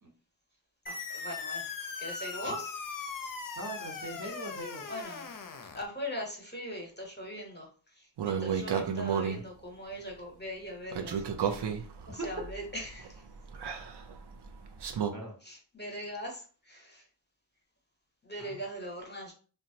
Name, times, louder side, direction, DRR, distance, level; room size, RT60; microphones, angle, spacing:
sound 1, 0.9-5.9, left 5 dB, 50° left, 0.5 m, -39 dB
voice 1, 0.9-1.7 2.0-2.7 4.9-5.4 5.7-11.7 12.1-13.2 15.4-17.1 18.2-19.3, equal, 25° left, 0 dB, 0.9 m, -41 dB
voice 2, 3.6-4.9 12.2-12.3 15.1-15.3 18.4-18.6, right 2 dB, 45° right, -1 dB, 1.0 m, -41 dB
sound 2, 8.2-9.4 10.9-15.1, right 7 dB, 70° right, 0.5 m, -33 dB
2.9 x 2.2 x 2.7 m, 0.39 s
wide cardioid pair, 50°, 44 cm